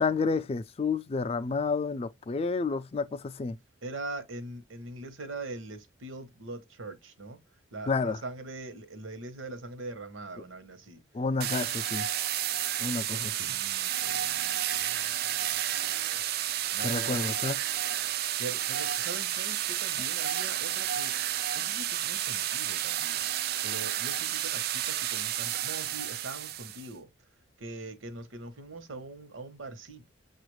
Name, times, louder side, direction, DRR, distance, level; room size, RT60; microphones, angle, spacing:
voice 1, 0.0-3.6 7.9-8.2 11.1-12.1 12.8-13.5 16.8-17.6, left 4 dB, 30° left, 0.3 m, -30 dB
voice 2, 3.8-7.4 7.7-11.0 13.1-15.4 16.7-17.3 18.4-23.3 23.6-27.1 27.6-30.1, right 2 dB, 85° right, 1.0 m, -42 dB
sound 1, 11.4-26.9, right 11 dB, 55° right, 0.3 m, -31 dB
6.8 x 2.4 x 3.1 m
head